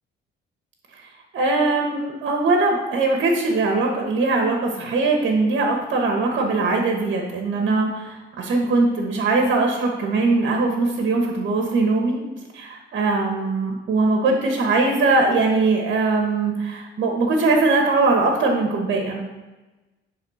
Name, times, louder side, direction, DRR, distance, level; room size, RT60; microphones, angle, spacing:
voice 1, 1.3-12.2 12.5-19.2, right 3 dB, 65° right, 2 dB, 1.4 m, -21 dB
10.5 x 3.7 x 4.9 m, 1.1 s
cardioid pair, 90°, 20 cm